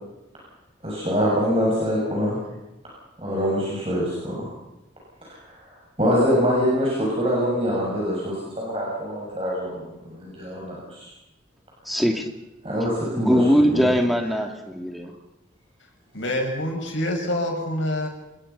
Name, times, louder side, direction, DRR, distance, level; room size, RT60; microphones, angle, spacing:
voice 1, 0.8-2.4 3.2-4.5 6.0-11.1 12.6-13.4 13.7-13.9, equal, 30° right, -4 dB, 6.6 m, -24 dB
voice 2, 11.8-12.3 13.1-15.1, equal, ahead, 3 dB, 2.6 m, -21 dB
voice 3, 16.1-18.1, left 1 dB, 80° left, 3 dB, 6.3 m, -26 dB
27.0 x 21.0 x 5.7 m, 0.97 s
head